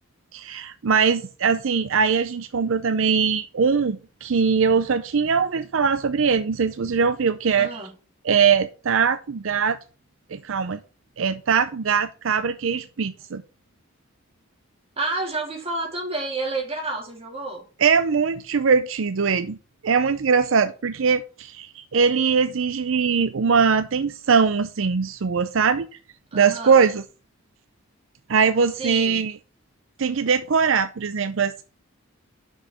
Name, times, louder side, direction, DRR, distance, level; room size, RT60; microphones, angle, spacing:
voice 1, 0.3-7.8 8.3-9.8 10.3-10.8 11.2-13.4 17.8-19.6 19.8-25.9 26.3-27.0 28.3-29.3 30.0-31.6, right 6 dB, 70° right, 0.5 m, -21 dB
voice 2, 7.6-7.9 15.0-17.6 26.3-26.8 28.8-29.2, right 2 dB, 30° right, 3.0 m, -30 dB
6.3 x 5.9 x 6.4 m
head